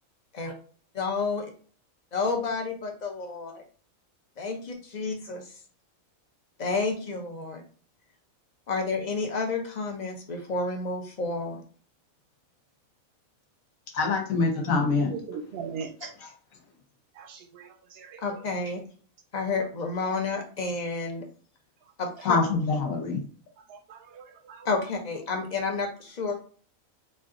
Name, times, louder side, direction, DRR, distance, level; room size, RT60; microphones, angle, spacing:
voice 1, 1.0-1.5 2.1-3.6 4.4-5.4 6.6-7.6 8.7-11.6 18.2-18.8 19.3-21.3 22.0-22.4 24.6-26.3, left 4 dB, 40° left, 3 dB, 0.7 m, -30 dB
voice 2, 13.9-15.1 22.2-23.2, left 4 dB, 75° left, 2 dB, 1.3 m, -24 dB
voice 3, 14.9-16.1 17.2-18.2 23.7-24.7, right 6 dB, 55° right, 5 dB, 0.8 m, -40 dB
3.2 x 2.7 x 3.7 m, 0.43 s
omnidirectional pair, 1.4 m